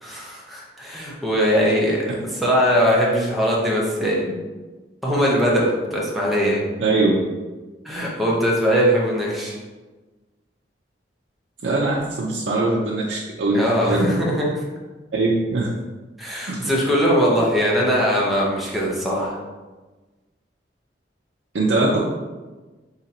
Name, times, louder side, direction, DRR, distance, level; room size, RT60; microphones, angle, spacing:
voice 1, 0.0-4.4 5.0-6.6 7.8-9.5 13.5-14.5 16.2-19.4, equal, ahead, -5 dB, 0.8 m, -21 dB
voice 2, 6.8-7.1 11.6-14.1 15.1-15.7 16.5-16.7 21.5-22.0, right 2 dB, 85° right, -5 dB, 0.6 m, -21 dB
4.0 x 2.9 x 4.2 m, 1.2 s
head